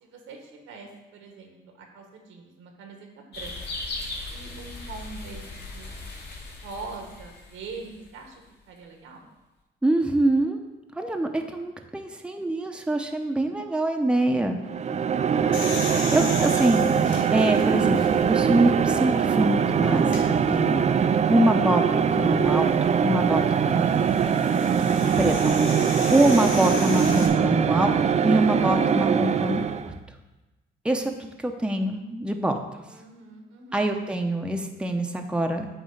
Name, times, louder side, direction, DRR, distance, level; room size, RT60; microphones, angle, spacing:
voice 1, 0.0-3.6 4.3-5.9 6.6-9.3 14.6-15.0 32.9-33.8, right 4 dB, 90° right, 2 dB, 1.5 m, -43 dB
sound 1, 3.3-8.3, left 2 dB, 55° left, 2.0 m, -38 dB
voice 2, 9.8-10.6 11.0-14.6 15.9-20.8 21.3-21.8 22.1-22.7 23.0-24.1 25.2-28.0 28.2-29.6 30.8-31.1 31.4-32.6 33.7-35.7, right 1 dB, 5° right, 4 dB, 0.7 m, -24 dB
sound 2, 14.6-30.0, right 7 dB, 35° right, 0.4 m, -22 dB
sound 3, 15.5-18.4 19.0-19.1 20.0-20.2 22.4-27.3, left 3 dB, 85° left, 1.5 m, -36 dB
9.1 x 3.0 x 6.5 m, 1.1 s
cardioid pair, 90°, 20 cm